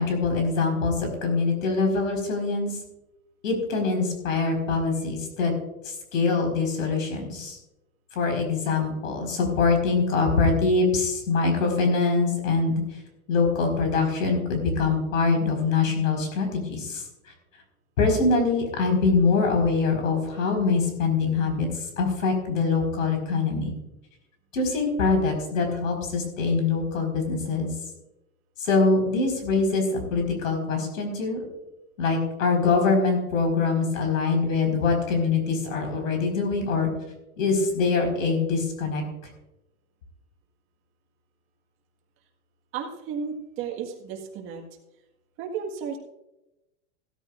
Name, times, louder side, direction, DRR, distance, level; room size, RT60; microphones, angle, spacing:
voice 1, 0.0-2.7 3.4-5.5 5.8-7.6 8.1-12.8 13.3-17.0 18.0-21.7 22.0-23.7 24.5-27.7 28.6-31.4 32.0-36.9 37.4-39.0, left 4 dB, 90° left, 4 dB, 4.7 m, -24 dB
voice 2, 42.7-44.6 45.4-46.0, right 6 dB, 30° right, 2 dB, 1.7 m, -33 dB
16.0 x 13.5 x 2.5 m, 0.94 s
supercardioid pair, 155°, 38 cm